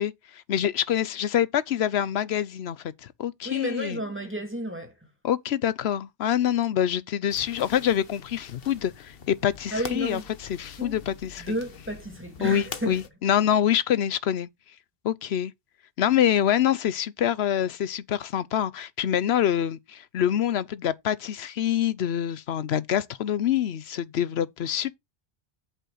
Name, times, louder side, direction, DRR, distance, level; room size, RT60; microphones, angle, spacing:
voice 1, 0.0-4.0 5.2-11.6 12.4-14.5 15.0-15.5 16.0-25.0, left 10 dB, 80° left, 1.0 m, -26 dB
voice 2, 3.4-4.9 9.7-10.3 10.8-11.0 11.4-13.0, right 1 dB, 10° right, 2.6 m, -32 dB
sound 1, 7.3-13.1, left 6 dB, 65° left, 1.2 m, -44 dB
8.4 x 7.3 x 4.0 m
omnidirectional pair, 1.1 m